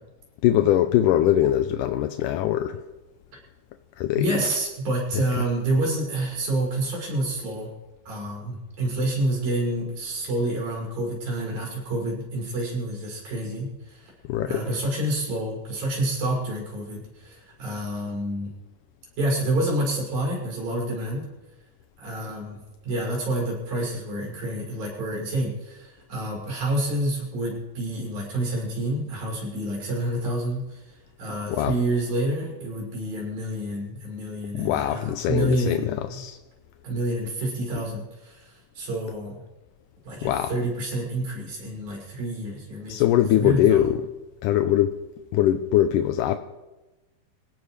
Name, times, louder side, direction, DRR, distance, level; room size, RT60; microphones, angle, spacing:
voice 1, 0.4-2.8 4.0-4.4 5.1-5.5 14.3-14.8 31.5-31.8 34.5-36.4 40.2-40.6 42.9-44.1 44.4-45.0 45.3-46.4, left 12 dB, 75° left, 7 dB, 2.1 m, -22 dB
voice 2, 4.1-7.7 8.1-14.1 14.5-18.5 19.2-21.3 22.0-22.6 22.8-36.2 36.8-39.4 40.0-43.8, right 1 dB, 80° right, -2 dB, 8.1 m, -28 dB
26.0 x 17.0 x 3.3 m, 1.1 s
omnidirectional pair, 4.1 m